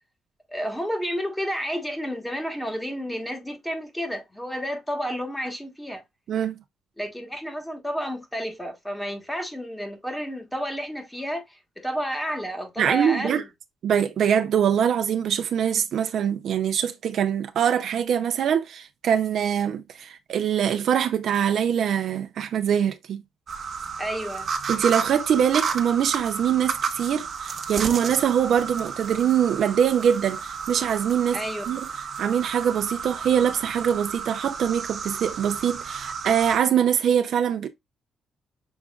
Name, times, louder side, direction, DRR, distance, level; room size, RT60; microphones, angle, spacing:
voice 1, 0.5-6.0 7.0-13.5 24.0-24.5 31.3-31.6, equal, 5° left, 1.3 m, -31 dB
voice 2, 12.8-13.4 13.8-23.2 24.7-31.9 32.2-37.7, right 8 dB, 65° right, 0.6 m, -23 dB
sound 1, 23.5-36.6, right 6 dB, 50° right, 0.9 m, -32 dB
6.3 x 3.4 x 2.4 m
cardioid pair, 90°, 0 cm